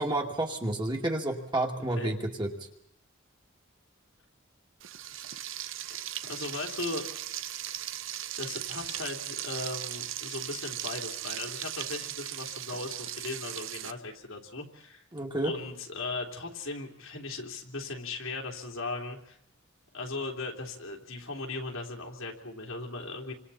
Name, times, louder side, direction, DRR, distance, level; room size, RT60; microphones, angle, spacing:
voice 1, 0.0-2.5 15.1-15.5, right 1 dB, 20° right, 1 dB, 2.4 m, -30 dB
voice 2, 1.8-2.1 6.2-7.1 8.4-15.0 15.4-19.4 19.9-23.3, left 3 dB, 80° left, 0 dB, 3.4 m, -38 dB
Frying (food), 4.8-13.9, right 12 dB, 70° right, 0.8 m, -38 dB
29.0 x 26.0 x 4.3 m, 0.79 s
head